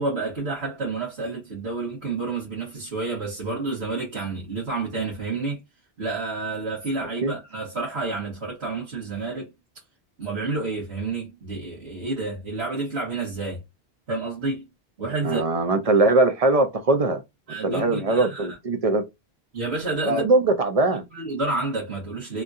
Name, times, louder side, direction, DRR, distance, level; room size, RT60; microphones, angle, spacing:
voice 1, 0.0-5.6 6.0-9.5 10.2-13.6 14.1-14.7 15.0-15.4 17.5-18.5 19.5-20.2 21.1-22.4, right 3 dB, 80° right, 1.9 m, -29 dB
voice 2, 15.2-17.2 17.6-19.0 20.1-21.0, right 2 dB, 45° right, 0.5 m, -21 dB
3.6 x 2.7 x 2.4 m
omnidirectional pair, 1.1 m